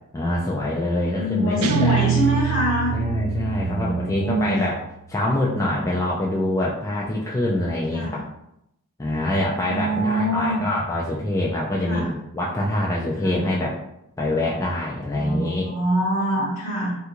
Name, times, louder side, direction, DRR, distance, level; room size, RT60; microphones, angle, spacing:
voice 1, 0.1-1.9 2.9-4.8 5.1-8.2 9.0-13.8 14.2-15.7, left 1 dB, 15° left, -4 dB, 0.3 m, -25 dB
voice 2, 1.2-3.0 3.5-4.6 7.9-8.2 9.6-10.6 11.8-12.1 13.2-13.4 15.1-17.0, equal, 60° left, -9 dB, 0.9 m, -24 dB
Guitar, 1.6-4.8, right 8 dB, 70° right, 0.3 m, -25 dB
3.4 x 2.4 x 2.9 m, 0.81 s
head